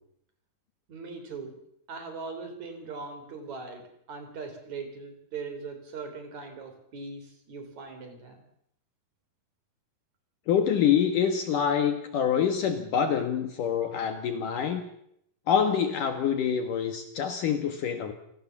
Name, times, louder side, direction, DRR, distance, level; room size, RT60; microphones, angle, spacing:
voice 1, 0.9-1.6 1.9-8.4, right 4 dB, 50° right, 6 dB, 5.1 m, -40 dB
voice 2, 10.5-14.8 15.5-18.1, left 8 dB, 65° left, 7 dB, 3.0 m, -26 dB
29.0 x 18.5 x 7.4 m, 0.73 s
omnidirectional pair, 4.3 m